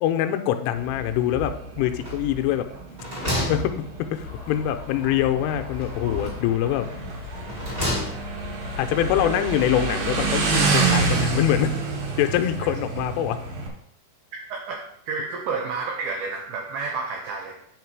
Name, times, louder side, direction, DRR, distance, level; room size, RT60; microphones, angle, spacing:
voice 1, 0.0-2.7 3.2-6.9 8.8-11.8 12.2-13.4, left 11 dB, 85° left, 7 dB, 3.1 m, -24 dB
Motorcycle, 0.7-13.7, right 4 dB, 60° right, 2.6 m, -28 dB
sound 1, 2.0-2.5 2.8-4.4 5.7-6.5 7.2-8.5, left 1 dB, 45° right, 0.7 m, -31 dB
sound 2, 4.2-10.4, left 6 dB, 60° left, 2.2 m, -39 dB
voice 2, 14.5-17.5, right 4 dB, 90° right, 1 dB, 2.1 m, -30 dB
8.7 x 5.6 x 4.7 m, 0.69 s
omnidirectional pair, 5.7 m